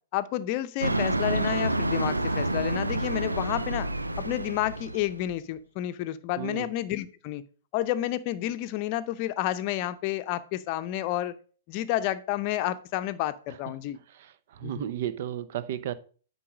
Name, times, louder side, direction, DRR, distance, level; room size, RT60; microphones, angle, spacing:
voice 1, 0.1-3.9 4.2-7.4 7.7-11.3 11.7-14.0 14.6-14.9, left 13 dB, 40° left, 0.7 m, -30 dB
sound 1, 0.8-5.3, right 1 dB, 85° right, 0.7 m, -28 dB
voice 2, 6.4-6.7 14.2-15.9, right 10 dB, 50° right, 0.7 m, -33 dB
8.5 x 5.4 x 5.2 m
figure-of-eight pair, 110°, 0 cm